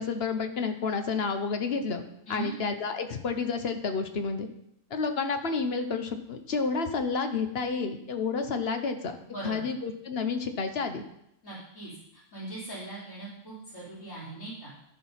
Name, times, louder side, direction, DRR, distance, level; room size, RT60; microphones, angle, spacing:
voice 1, 0.0-2.0 2.3-4.5 4.9-9.2 9.4-11.0, left 4 dB, 50° left, 7 dB, 0.9 m, -30 dB
voice 2, 9.3-9.7 11.4-11.9 12.3-14.7, right 2 dB, 70° left, -13 dB, 4.1 m, -39 dB
13.5 x 4.6 x 5.6 m, 0.78 s
omnidirectional pair, 1.6 m